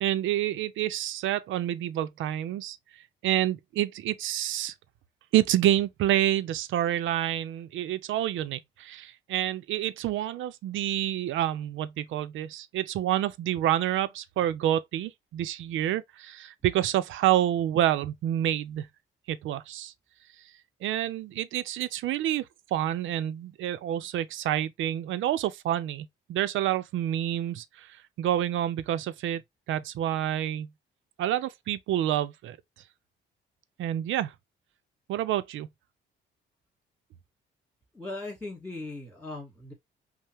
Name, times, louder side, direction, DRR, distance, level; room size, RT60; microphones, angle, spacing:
voice 1, 0.0-2.8 3.2-4.7 5.3-18.9 19.3-19.9 20.8-29.4 29.7-30.7 31.2-32.6 33.8-34.3 35.1-35.7, right 12 dB, 80° right, 0.6 m, -28 dB
voice 2, 37.9-39.7, left 2 dB, 5° left, 2.7 m, -38 dB
5.4 x 2.1 x 3.4 m
cardioid pair, 90°, 20 cm